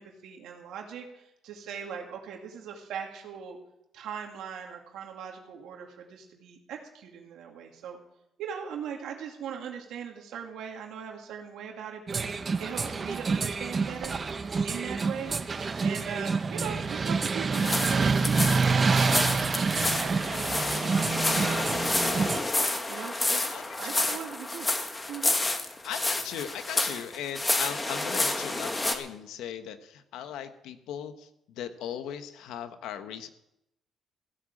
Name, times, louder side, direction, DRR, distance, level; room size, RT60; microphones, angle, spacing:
voice 1, 0.0-3.6 3.9-8.0 8.4-14.2 14.6-22.2 22.9-24.7 25.1-25.4, right 7 dB, 85° right, 2 dB, 2.3 m, -40 dB
sound 1, 12.1-22.4, right 4 dB, 35° right, 0.9 m, -27 dB
sound 2, 17.5-29.0, left 2 dB, 20° left, 1.8 m, -29 dB
voice 2, 23.3-24.1 25.8-31.3 31.6-33.3, left 9 dB, 90° left, 10 dB, 1.2 m, -38 dB
16.0 x 7.8 x 8.5 m, 0.84 s
cardioid pair, 90°, 0 cm